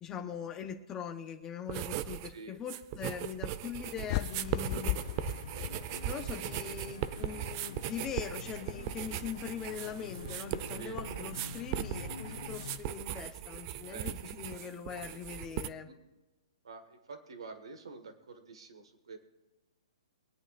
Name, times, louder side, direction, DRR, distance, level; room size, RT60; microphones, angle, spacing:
voice 1, 0.0-5.0 6.0-15.9, left 8 dB, 20° left, 4 dB, 1.0 m, -41 dB
sound 1, 1.7-2.3 2.6-15.7, right 12 dB, 35° right, 0.5 m, -39 dB
voice 2, 2.2-2.6 10.8-11.0 13.9-14.4 15.8-16.0 16.6-19.2, right 4 dB, 80° right, 7 dB, 1.7 m, -48 dB
sound 2, 3.9-12.8, left 5 dB, 85° left, 1.3 m, -46 dB
sound 3, 4.1-6.4, left 17 dB, 35° left, 0.4 m, -36 dB
23.5 x 8.9 x 2.6 m, 1.1 s
hypercardioid pair, 145°, 3 cm